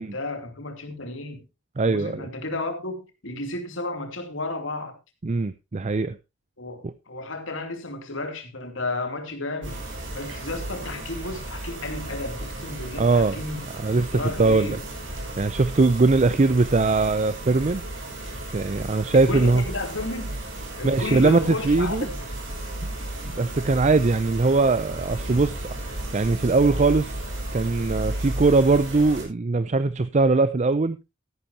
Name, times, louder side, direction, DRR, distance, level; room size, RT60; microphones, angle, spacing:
voice 1, 0.0-1.4 1.9-4.9 6.6-9.8 10.1-13.8 14.1-14.8 19.1-20.3 20.8-22.2, left 2 dB, 85° left, 2.7 m, -32 dB
voice 2, 1.8-2.2 5.2-6.2 6.8-6.9 13.0-13.4 13.8-14.8 15.4-17.8 18.5-19.6 20.8-22.1 23.3-25.7 26.1-27.2 27.5-31.0, right 3 dB, 35° right, 0.5 m, -21 dB
sound 1, 9.6-29.2, right 1 dB, 75° right, 5.3 m, -34 dB
14.0 x 11.5 x 2.8 m
head